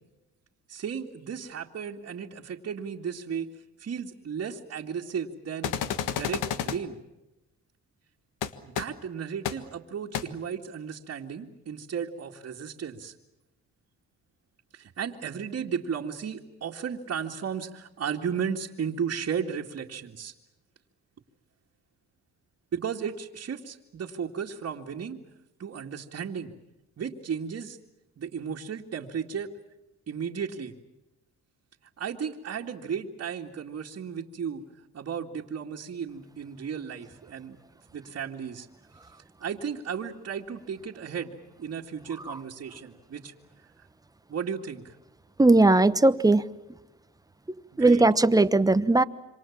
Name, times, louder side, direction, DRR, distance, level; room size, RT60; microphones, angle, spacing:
voice 1, 0.7-3.5 3.8-5.7 6.0-7.0 8.6-13.1 14.7-20.3 22.7-25.2 25.6-26.5 27.0-27.8 28.2-29.5 30.1-30.7 32.0-34.6 34.9-37.6 37.9-38.7 39.4-43.3 43.8-43.9 44.3-45.0 47.8-48.0, right 7 dB, 50° right, -2 dB, 2.2 m, -34 dB
sound 1, 5.6-6.8 8.4-8.5 8.7-8.8 9.4-9.5 10.1-10.2, left 9 dB, 90° left, 1.5 m, -30 dB
voice 2, 45.4-46.5 47.8-49.0, right 2 dB, 10° right, 14 dB, 1.1 m, -19 dB
27.0 x 26.0 x 7.4 m, 0.97 s
cardioid pair, 90°, 30 cm